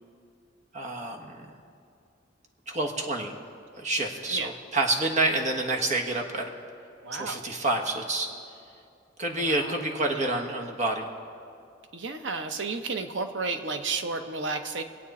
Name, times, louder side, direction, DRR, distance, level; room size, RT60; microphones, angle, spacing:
voice 1, 0.7-1.5 2.7-3.3 3.8-6.5 7.1-8.3 9.2-11.1, right 2 dB, 40° right, 2 dB, 1.3 m, -28 dB
voice 2, 7.0-7.4 9.3-9.8 10.1-10.4 11.9-14.8, right 4 dB, 70° right, 7 dB, 0.9 m, -32 dB
23.5 x 8.5 x 4.2 m, 2.4 s
head